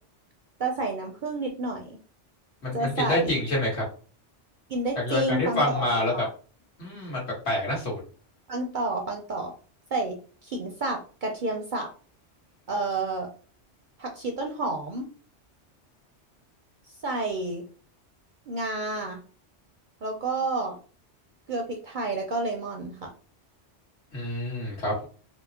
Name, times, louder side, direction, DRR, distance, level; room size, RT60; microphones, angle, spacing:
voice 1, 0.6-2.0 2.7-3.4 4.7-5.8 6.1-6.3 8.5-9.5 9.9-10.2 10.4-11.9 12.7-13.3 14.0-15.1 17.0-17.6 18.5-19.2 20.0-20.8 21.5-23.1, right 2 dB, 55° right, 2 dB, 0.6 m, -30 dB
voice 2, 2.6-3.8 5.0-6.1 6.8-8.0 24.1-25.0, left 1 dB, 65° left, -4 dB, 1.7 m, -27 dB
4.4 x 2.0 x 2.8 m, 0.39 s
omnidirectional pair, 1.2 m